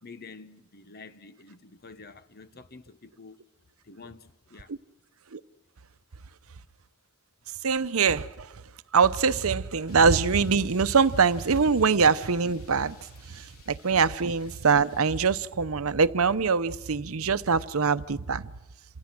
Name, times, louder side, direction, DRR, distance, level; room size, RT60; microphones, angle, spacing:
voice 1, 0.0-3.4 3.8-4.7, left 4 dB, 45° left, 1.3 m, -48 dB
voice 2, 7.6-8.6 8.9-13.0 13.2-18.5, right 5 dB, 85° right, 0.8 m, -23 dB
sound 1, 9.9-15.3, left 5 dB, 80° left, 3.8 m, -56 dB
27.5 x 27.0 x 6.2 m
head